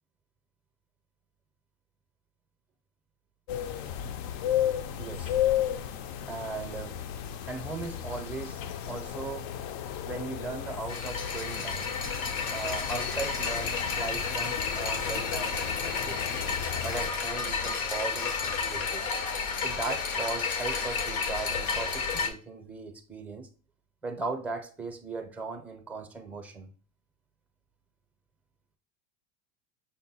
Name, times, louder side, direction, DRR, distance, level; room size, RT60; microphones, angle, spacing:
sound 1, 3.5-17.1, left 10 dB, 60° left, 0.5 m, -34 dB
voice 1, 5.0-5.3 6.3-7.0 7.5-8.6 8.9-9.5 10.0-11.9 12.5-16.4 16.8-19.1 19.6-23.5 24.0-26.7, right 3 dB, 5° right, 0.5 m, -38 dB
sound 2, 10.9-22.3, left 5 dB, 90° left, 1.0 m, -31 dB
6.0 x 2.2 x 4.1 m
cardioid pair, 145°, 39 cm